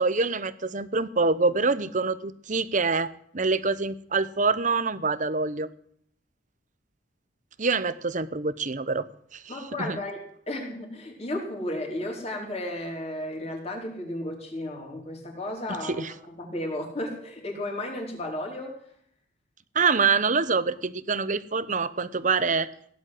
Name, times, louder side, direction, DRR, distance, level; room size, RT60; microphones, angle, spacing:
voice 1, 0.0-5.7 7.6-9.1 9.3-10.0 15.8-16.1 19.7-22.7, right 4 dB, 40° right, 15 dB, 0.9 m, -25 dB
voice 2, 9.5-10.2 10.5-18.8, left 1 dB, 30° left, 0 dB, 4.5 m, -34 dB
17.5 x 10.5 x 7.7 m, 0.64 s
head